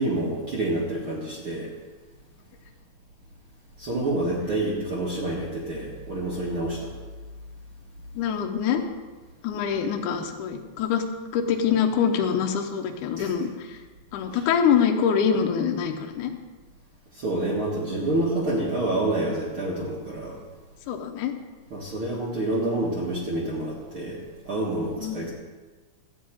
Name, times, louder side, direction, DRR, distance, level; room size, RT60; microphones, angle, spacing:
voice 1, 0.0-1.7 3.8-6.9 13.2-13.3 14.3-14.4 17.1-20.4 21.7-25.3, right 1 dB, 70° right, -5 dB, 1.2 m, -28 dB
voice 2, 8.1-8.8 9.4-11.0 11.3-13.8 14.1-16.3 20.9-21.3 25.0-25.3, left 7 dB, 80° left, 4 dB, 1.8 m, -24 dB
13.0 x 4.8 x 8.8 m, 1.3 s
omnidirectional pair, 5.0 m